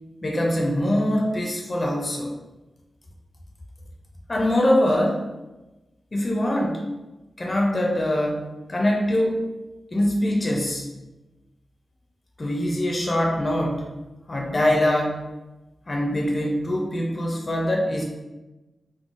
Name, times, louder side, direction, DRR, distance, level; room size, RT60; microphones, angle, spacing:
voice 1, 0.2-2.3 4.3-5.2 6.1-6.9 7.4-9.5 9.9-10.9 12.4-13.9 14.3-15.2 15.9-18.0, left 1 dB, 25° left, -1 dB, 0.4 m, -23 dB
3.7 x 2.1 x 2.4 m, 1.1 s
wide cardioid pair, 175°, 0 cm